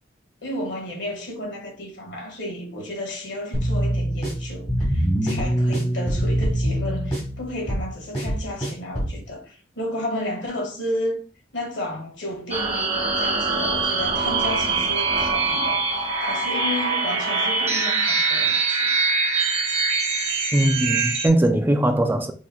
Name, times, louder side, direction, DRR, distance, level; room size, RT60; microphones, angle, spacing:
voice 1, 0.4-11.2 11.5-18.9, left 1 dB, 85° left, 1.6 m, -32 dB
sound 1, 3.5-9.2, equal, 30° left, 2.1 m, -24 dB
sound 2, 12.5-21.3, right 4 dB, 35° right, 1.0 m, -23 dB
voice 2, 20.5-22.3, right 1 dB, 10° right, 0.3 m, -20 dB
5.5 x 3.2 x 2.2 m
head